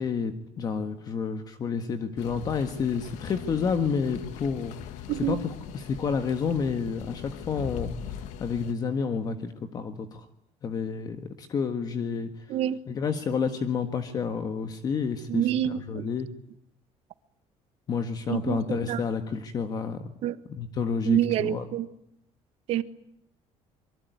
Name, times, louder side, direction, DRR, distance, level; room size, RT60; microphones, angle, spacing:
voice 1, 0.0-10.3 10.6-12.4 12.9-16.3 17.9-20.1 20.5-21.7, left 5 dB, 30° left, 1.6 m, -30 dB
sound 1, 2.2-8.7, left 10 dB, 90° left, 1.8 m, -40 dB
voice 2, 15.3-16.0 18.3-19.0 20.2-20.4 21.0-21.9 22.7-22.8, right 11 dB, 55° right, 1.4 m, -27 dB
25.5 x 23.5 x 9.5 m
cardioid pair, 170°, 12 cm